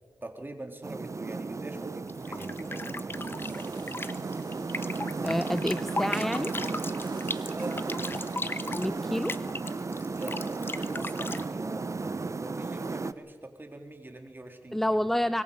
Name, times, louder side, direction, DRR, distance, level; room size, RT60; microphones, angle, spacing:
voice 1, 0.2-3.7 7.5-7.8 10.1-14.8, right 2 dB, 30° right, 4 dB, 3.5 m, -43 dB
sound 1, 0.8-13.1, right 3 dB, 45° right, 0.8 m, -34 dB
sound 2, 2.1-11.4, left 2 dB, 30° left, 1.0 m, -37 dB
sound 3, 3.4-9.3, right 5 dB, 85° right, 1.9 m, -44 dB
voice 2, 5.2-6.5 8.8-9.3 14.7-15.4, equal, 5° left, 13 dB, 0.6 m, -28 dB
24.0 x 21.5 x 5.5 m, 1.5 s
cardioid pair, 55°, 7 cm